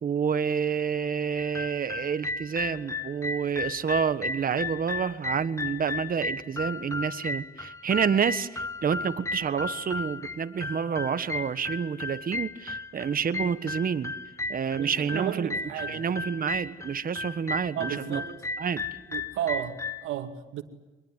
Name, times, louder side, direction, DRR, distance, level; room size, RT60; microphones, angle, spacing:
voice 1, 0.0-14.1 14.5-15.5 15.9-18.2 18.6-18.8, right 7 dB, 45° right, 1.4 m, -28 dB
sound 1, 1.4-20.1, left 3 dB, 15° left, 0.9 m, -35 dB
voice 2, 14.7-16.0 17.7-18.3 19.1-20.6, right 11 dB, 85° right, 2.4 m, -33 dB
25.0 x 21.0 x 9.2 m
cardioid pair, 90°, 20 cm